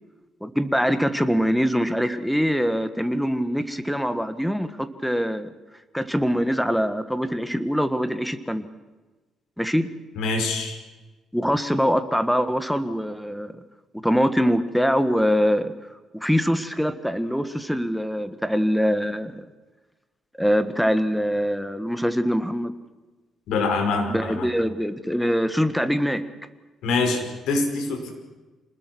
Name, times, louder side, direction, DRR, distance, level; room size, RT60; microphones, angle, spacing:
voice 1, 0.4-5.5 5.9-8.7 9.6-9.9 11.3-13.5 14.0-15.7 16.2-19.4 20.4-22.7 24.1-26.2, equal, ahead, 11 dB, 1.6 m, -23 dB
voice 2, 10.2-10.7 23.5-24.5 26.8-28.1, left 3 dB, 85° left, 4 dB, 5.8 m, -24 dB
27.0 x 20.0 x 6.3 m, 1.2 s
cardioid pair, 130°, 0 cm